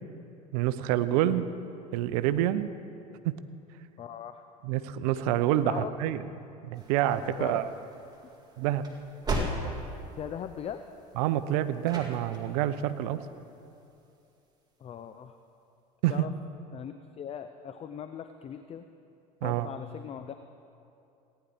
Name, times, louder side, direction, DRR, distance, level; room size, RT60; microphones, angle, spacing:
voice 1, 0.5-1.5 1.9-2.7 3.2-3.3 4.6-6.2 6.6-7.7 8.6-8.8 11.2-13.2 16.0-16.2 19.4-19.7, right 12 dB, 70° right, 13 dB, 0.6 m, -27 dB
voice 2, 4.0-4.4 5.6-5.9 7.4-7.6 9.3-9.8 10.2-10.8 14.8-15.3 16.1-16.3 16.7-18.9 19.4-20.4, left 9 dB, 30° left, 9 dB, 0.5 m, -39 dB
sound 1, 6.7-14.0, right 2 dB, 20° right, 2.0 m, -39 dB
17.5 x 9.9 x 3.5 m, 2.7 s
hypercardioid pair, 75°, 20 cm